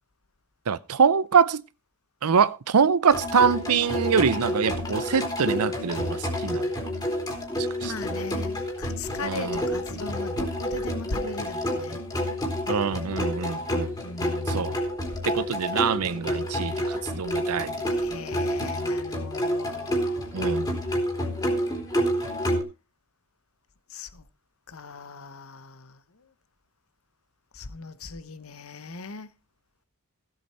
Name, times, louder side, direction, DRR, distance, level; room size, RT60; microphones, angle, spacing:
voice 1, 0.7-1.6 2.2-6.7 7.6-7.9 9.2-9.6 12.7-13.9 14.5-14.8 15.3-17.8 20.3-20.8, right 6 dB, 85° right, 0.6 m, -24 dB
sound 1, 3.1-22.6, equal, 20° left, 3.4 m, -29 dB
voice 2, 7.8-12.0 14.0-14.8 17.9-20.3 23.9-24.2 24.7-26.0 27.5-29.3, left 3 dB, 70° left, 1.1 m, -39 dB
15.5 x 8.0 x 4.4 m
head